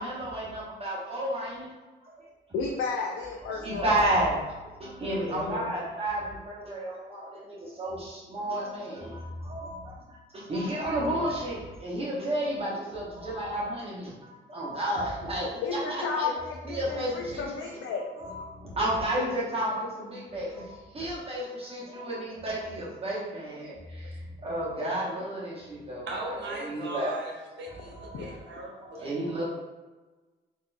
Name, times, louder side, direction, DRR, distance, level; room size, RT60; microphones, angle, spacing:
voice 1, 0.0-1.7 2.2-2.3 3.5-4.4 4.8-15.5 15.9-16.3 16.6-17.6 18.2-26.1 26.6-27.1 27.6-28.5 28.8-29.4, right 1 dB, 30° right, -6 dB, 1.0 m, -32 dB
voice 2, 2.5-4.0 5.0-5.7 15.6-18.1 28.1-28.3, left 4 dB, 85° left, -1 dB, 0.4 m, -33 dB
voice 3, 26.1-29.2, right 2 dB, 65° right, -2 dB, 0.9 m, -38 dB
4.0 x 2.6 x 2.3 m, 1.2 s
cardioid pair, 90°, 20 cm